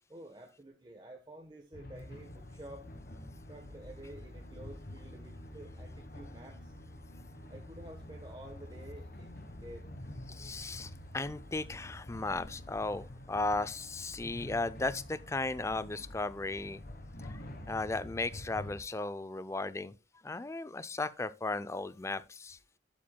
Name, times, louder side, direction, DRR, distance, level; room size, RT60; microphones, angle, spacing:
voice 1, 0.1-2.9 3.5-6.7 7.5-9.9, right 1 dB, 25° right, 1.1 m, -50 dB
sound 1, 1.7-18.8, left 1 dB, 50° left, 1.3 m, -47 dB
voice 2, 10.3-16.8 17.2-17.4 17.7-19.9 20.2-22.6, left 2 dB, 15° left, 0.4 m, -36 dB
11.5 x 7.4 x 2.2 m
head